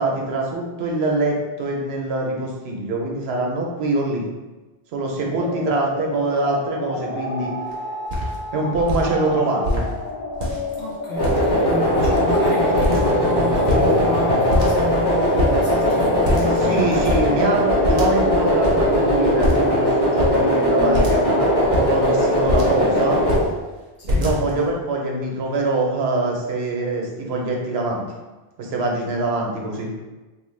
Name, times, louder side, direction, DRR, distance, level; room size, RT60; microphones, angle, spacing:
voice 1, 0.0-4.2 4.9-7.5 8.5-9.9 16.6-23.2 24.1-28.1 28.6-29.9, right 2 dB, 80° right, -1 dB, 0.9 m, -24 dB
sound 1, 5.4-23.5, left 2 dB, 50° left, 0.7 m, -31 dB
sound 2, 7.7-7.8 8.1-8.4 8.7-9.0 9.6-9.9 10.3-10.8 11.2-11.7 11.9-12.4 12.8-13.3 13.5-14.2 14.5-15.0 15.4-15.6 16.2-16.6 16.9-17.3 17.8-18.3 18.6-18.8 19.4-19.8 20.2-20.4 20.9-21.2 21.6-22.8 23.2-23.5 24.1-24.7, left 1 dB, 50° right, 0.7 m, -24 dB
voice 2, 10.8-17.4 24.0-24.4, left 1 dB, 75° left, -5 dB, 1.2 m, -31 dB
sound 3, 11.1-23.4, equal, 25° left, 0.9 m, -19 dB
2.9 x 2.1 x 3.1 m, 1.2 s
omnidirectional pair, 1.1 m